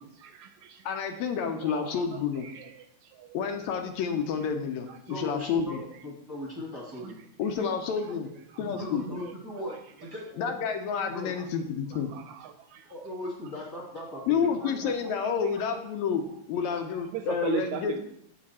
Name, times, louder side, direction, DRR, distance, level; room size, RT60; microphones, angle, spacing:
voice 1, 0.2-1.2 1.4-2.0 2.4-3.4 4.9-5.0 7.0-7.1 8.5-8.8 11.4-11.5 11.9-12.9 14.8-14.9 15.2-15.6 17.1-18.0, right 10 dB, 80° right, 7 dB, 1.8 m, -39 dB
voice 2, 0.9-2.5 3.3-5.8 7.4-8.3 8.6-9.0 10.4-12.1 14.3-18.0, left 6 dB, 75° left, 6 dB, 1.9 m, -29 dB
voice 3, 5.1-5.8 6.0-7.2 8.6-10.5 11.1-11.4 12.9-14.9 17.7-17.8, left 1 dB, 10° right, -4 dB, 1.0 m, -38 dB
7.6 x 5.0 x 4.1 m, 0.71 s
omnidirectional pair, 3.4 m